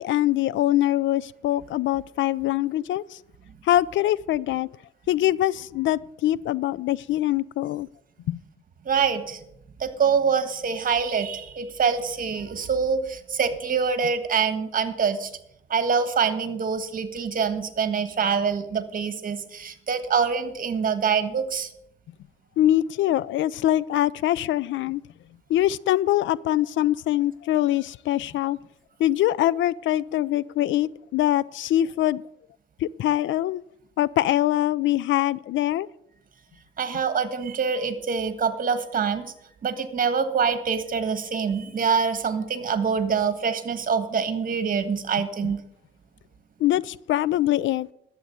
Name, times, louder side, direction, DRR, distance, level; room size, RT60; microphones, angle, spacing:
voice 1, 0.0-3.0 3.7-4.7 5.1-7.9 8.3-8.4 22.6-25.0 25.5-28.6 29.0-32.2 32.8-33.6 34.0-35.9 45.4-45.5 46.6-47.9, left 13 dB, 70° left, 0.4 m, -23 dB
voice 2, 8.8-9.4 9.8-15.3 15.7-21.7 36.8-39.3 39.6-45.6, right 6 dB, 45° right, 1.5 m, -25 dB
11.5 x 7.8 x 6.9 m
cardioid pair, 90°, 20 cm